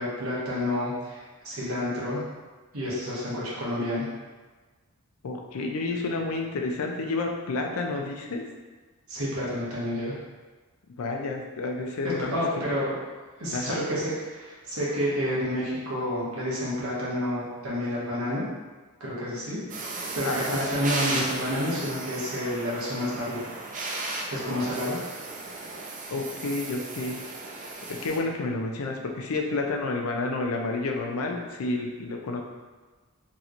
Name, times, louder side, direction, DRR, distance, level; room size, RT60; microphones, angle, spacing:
voice 1, 0.0-2.2 2.7-4.1 9.1-10.2 12.3-13.0 13.4-18.4 19.0-23.5 24.3-25.0, left 1 dB, 90° right, -7 dB, 1.1 m, -29 dB
voice 2, 5.2-8.4 11.0-12.4 13.5-13.8 20.3-20.6 26.1-27.2 27.9-32.4, left 3 dB, 85° left, 1 dB, 0.5 m, -30 dB
sound 1, 19.7-28.2, right 2 dB, 35° right, 0.4 m, -35 dB
3.1 x 2.9 x 2.5 m, 1.3 s
head